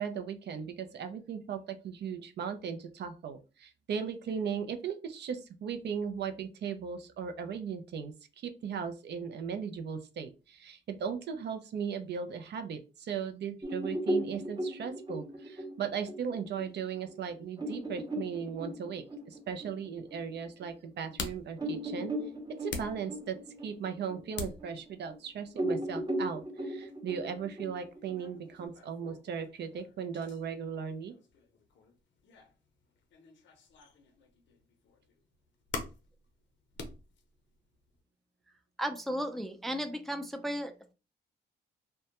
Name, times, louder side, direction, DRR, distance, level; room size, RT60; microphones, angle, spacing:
voice 1, 0.0-22.1 22.5-23.4 23.6-31.1, right 7 dB, 55° right, 8 dB, 0.5 m, -37 dB
sound 1, 13.6-20.7 21.1-21.2 21.6-25.2 25.6-28.7, right 1 dB, 20° right, 0.7 m, -37 dB
sound 2, 20.4-38.0, left 4 dB, 65° left, 0.6 m, -47 dB
voice 2, 38.8-40.9, equal, ahead, 6 dB, 0.4 m, -35 dB
2.1 x 2.1 x 2.8 m, 0.32 s
supercardioid pair, 65°, 21 cm